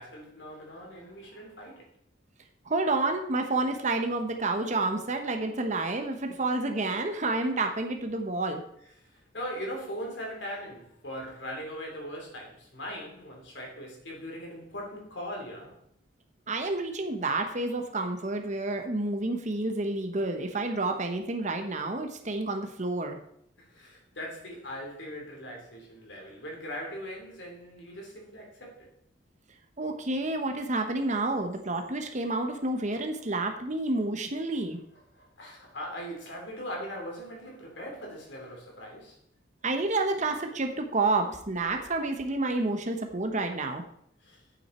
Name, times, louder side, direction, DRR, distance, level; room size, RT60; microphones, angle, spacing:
voice 1, 0.0-1.9 9.0-15.8 23.6-28.9 35.1-39.2 44.2-44.4, equal, 70° left, 0 dB, 3.9 m, -40 dB
voice 2, 2.7-8.6 16.5-23.2 29.8-34.8 39.6-43.8, right 2 dB, 40° right, 5 dB, 1.0 m, -29 dB
11.5 x 8.9 x 4.4 m, 0.71 s
head